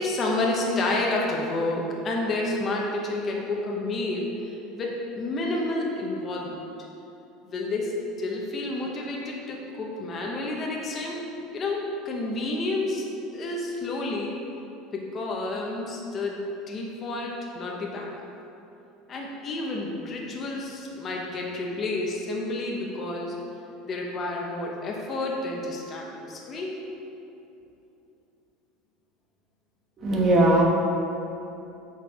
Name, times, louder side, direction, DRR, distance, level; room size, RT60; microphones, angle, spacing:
voice 1, 0.0-6.6 7.4-11.2 11.5-13.1 13.3-14.4 14.9-18.1 19.1-23.3 23.8-26.8, left 2 dB, 30° left, -2 dB, 0.9 m, -30 dB
voice 2, 30.0-30.6, right 1 dB, 30° right, -1 dB, 1.2 m, -19 dB
7.7 x 4.5 x 4.7 m, 2.9 s
cardioid pair, 145°, 0 cm